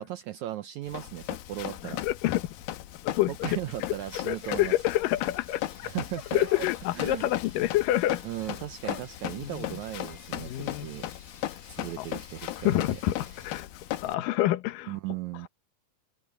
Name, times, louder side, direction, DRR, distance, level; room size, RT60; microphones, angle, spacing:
voice 1, 0.0-2.0 3.3-4.7 5.8-6.7 6.9-7.3 8.2-11.1 11.7-13.0 14.9-15.5, right 14 dB, 80° right, 1.7 m, -37 dB
Run, 0.9-14.1, left 14 dB, 90° left, 2.8 m, -37 dB
voice 2, 1.8-2.4 3.0-3.6 4.3-5.9 6.3-8.2 9.4-9.8 10.4-10.9 12.0-12.1 12.6-13.7 14.0-14.9, left 15 dB, 75° left, 2.6 m, -27 dB
sound 1, 4.3-13.6, left 3 dB, 30° left, 5.2 m, -54 dB
sound 2, 5.0-5.2 5.7-5.9 6.3-6.7 7.6-7.7 8.3-9.1 10.5-10.9 11.2-11.4, left 4 dB, 50° left, 6.4 m, -48 dB
omnidirectional pair, 4.1 m